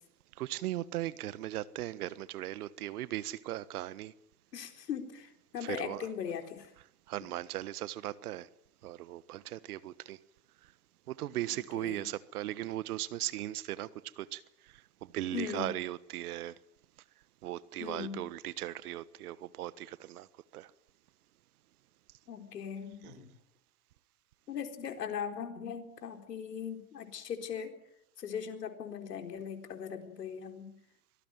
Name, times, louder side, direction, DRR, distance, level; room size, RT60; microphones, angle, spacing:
voice 1, 0.4-4.1 5.6-6.1 7.1-8.5 8.8-10.2 11.1-13.9 14.2-14.4 15.0-16.5 17.4-20.3 20.5-20.7 23.0-23.3, right 14 dB, 65° right, 1.4 m, -38 dB
voice 2, 4.5-6.7 11.7-12.0 15.3-15.7 17.8-18.2 22.3-23.3 24.5-27.7 28.2-30.7, left 7 dB, 85° left, 4.2 m, -39 dB
24.5 x 18.5 x 9.3 m
hypercardioid pair, 110°, 47 cm